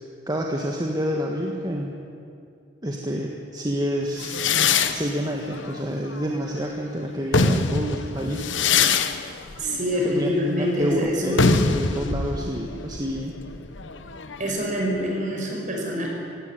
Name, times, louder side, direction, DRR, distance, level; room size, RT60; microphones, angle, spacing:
voice 1, 0.3-2.0 2.8-4.4 4.9-8.7 10.0-13.4, equal, 20° right, 0 dB, 1.5 m, -28 dB
sound 1, 4.2-6.7 7.1-14.6, left 5 dB, 85° left, 1.1 m, -25 dB
voice 2, 9.6-11.5 14.4-16.1, equal, 45° right, -1 dB, 5.4 m, -25 dB
17.0 x 17.0 x 9.6 m, 2.4 s
head